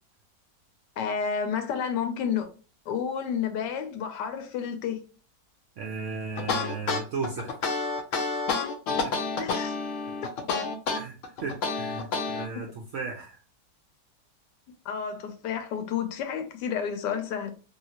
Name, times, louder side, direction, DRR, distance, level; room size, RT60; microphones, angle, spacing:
voice 1, 1.0-2.5 2.9-5.0 9.4-9.8 14.8-17.5, left 7 dB, 85° left, 1.2 m, -30 dB
voice 2, 5.8-7.8 8.9-9.1 10.9-13.4, right 4 dB, 75° right, 0.7 m, -36 dB
sound 1, 6.4-12.5, left 4 dB, 65° left, 0.8 m, -29 dB
2.9 x 2.8 x 2.8 m
omnidirectional pair, 1.8 m